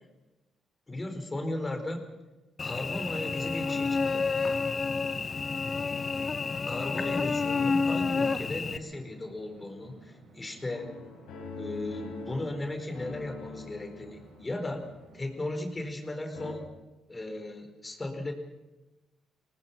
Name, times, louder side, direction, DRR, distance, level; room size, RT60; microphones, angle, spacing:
voice 1, 0.9-2.0 2.6-4.3 6.7-10.9 11.5-14.9 15.1-16.7 17.1-18.3, left 1 dB, 25° left, 5 dB, 4.5 m, -36 dB
Cricket / Buzz, 2.6-8.8, left 4 dB, 40° left, 1.0 m, -29 dB
sound 1, 8.3-15.2, right 3 dB, 75° right, 4.9 m, -56 dB
sound 2, 10.7-16.0 16.3-16.5, left 3 dB, 85° left, 5.0 m, -45 dB
25.0 x 19.0 x 6.0 m, 1.1 s
supercardioid pair, 60°, 0 cm